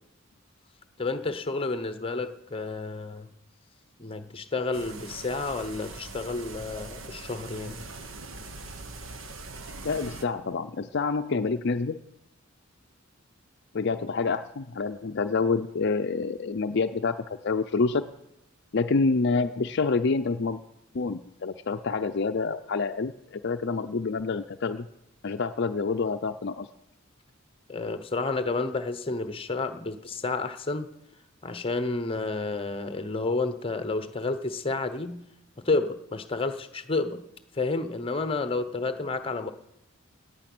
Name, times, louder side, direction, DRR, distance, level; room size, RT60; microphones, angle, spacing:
voice 1, 1.0-3.3 4.0-7.8 27.7-30.9 31.4-35.2 35.6-37.2 37.5-39.5, left 3 dB, 25° left, 10 dB, 0.9 m, -30 dB
sound 1, 4.7-10.3, right 3 dB, 70° right, 1.3 m, -42 dB
voice 2, 9.8-12.0 13.7-17.2 17.4-18.1 18.7-20.6 20.9-24.9 25.2-26.7, left 4 dB, 55° left, 8 dB, 0.5 m, -27 dB
17.5 x 10.0 x 6.1 m, 0.83 s
head